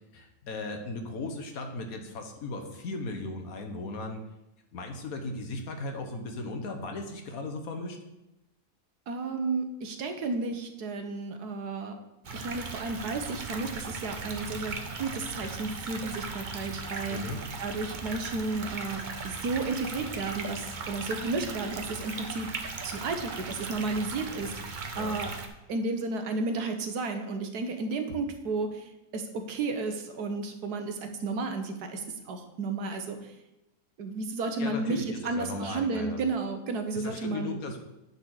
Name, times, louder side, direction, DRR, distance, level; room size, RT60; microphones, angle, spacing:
voice 1, 0.1-4.2 4.7-8.0 17.1-17.4 24.9-25.2 34.6-36.2 37.0-37.8, left 2 dB, 65° left, 5 dB, 1.4 m, -37 dB
voice 2, 9.1-12.0 12.3-17.2 17.6-22.5 22.8-25.3 25.7-33.3 34.0-37.6, right 3 dB, 80° right, 6 dB, 1.5 m, -33 dB
sound 1, 12.2-25.5, right 4 dB, 40° right, 0.7 m, -38 dB
9.4 x 4.2 x 6.2 m, 0.93 s
omnidirectional pair, 1.7 m